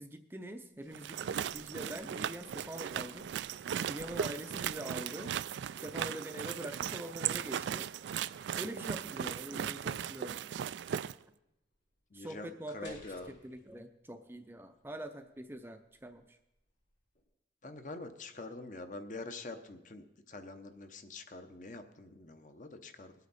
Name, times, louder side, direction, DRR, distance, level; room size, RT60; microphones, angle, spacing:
voice 1, 0.0-3.3 3.9-5.5 5.8-7.9 8.5-10.4 12.1-13.0 13.3-16.4, right 1 dB, 10° right, 7 dB, 0.5 m, -44 dB
sound 1, 0.7-17.2, left 1 dB, 85° left, 4.0 m, -63 dB
sound 2, 0.9-11.1, right 9 dB, 90° right, 0.3 m, -37 dB
voice 2, 1.7-2.0 12.1-13.3 17.6-23.1, left 2 dB, 45° left, 8 dB, 0.8 m, -46 dB
20.0 x 8.2 x 4.2 m, 0.88 s
head